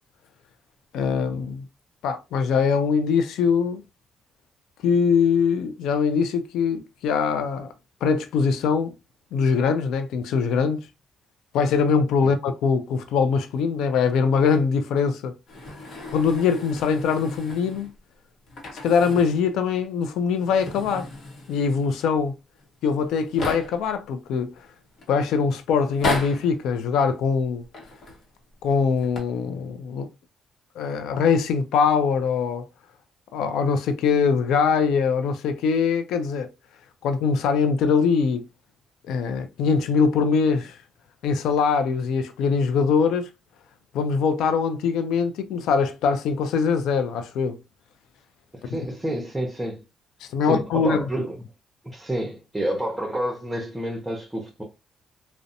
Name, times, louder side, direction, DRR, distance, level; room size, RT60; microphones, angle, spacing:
voice 1, 0.9-1.6 2.0-3.8 4.8-7.7 8.0-8.9 9.3-10.9 11.5-15.3 16.1-17.9 18.8-21.1 21.5-22.4 22.8-24.5 25.1-27.6 28.6-30.1 30.8-32.6 33.3-36.5 37.0-38.5 39.1-40.8 41.2-43.3 43.9-47.6 50.2-51.1, left 5 dB, 85° left, 0.3 m, -22 dB
sound 1, 15.5-18.0 18.5-19.5 19.8-19.9 20.3-21.9 22.6-22.7 22.9-23.9 24.6-25.1 25.8-26.6 27.6-28.3 28.9-29.2, left 2 dB, 60° left, 0.9 m, -34 dB
voice 2, 48.6-49.8 50.4-51.4 51.8-54.6, right 1 dB, 10° right, 0.7 m, -29 dB
2.6 x 2.0 x 2.6 m
cardioid pair, 90°, 0 cm